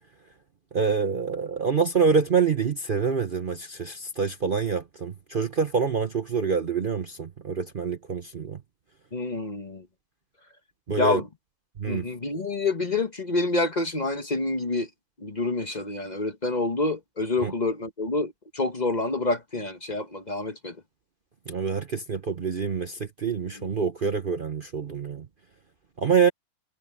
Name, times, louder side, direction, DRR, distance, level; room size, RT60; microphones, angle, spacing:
voice 1, 0.7-8.6 10.9-11.2 11.8-12.1 17.4-17.5 21.5-25.2 26.0-26.3, right 5 dB, 40° right, 1.0 m, -26 dB
voice 2, 9.1-9.9 11.0-11.3 11.9-14.9 15.2-20.8 23.6-23.7, left 2 dB, 30° left, 1.1 m, -27 dB
omnidirectional pair, 1.6 m